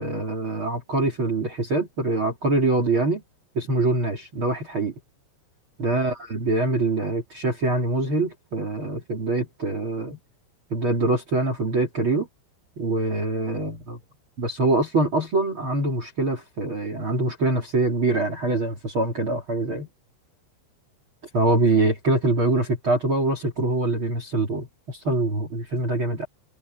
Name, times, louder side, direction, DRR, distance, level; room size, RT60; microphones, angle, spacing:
voice 1, 0.0-3.2 3.5-4.9 5.8-10.2 10.7-12.3 12.8-14.0 14.4-19.9 21.3-26.2, right 2 dB, 35° right, 2.5 m, -24 dB
omnidirectional pair, 5.9 m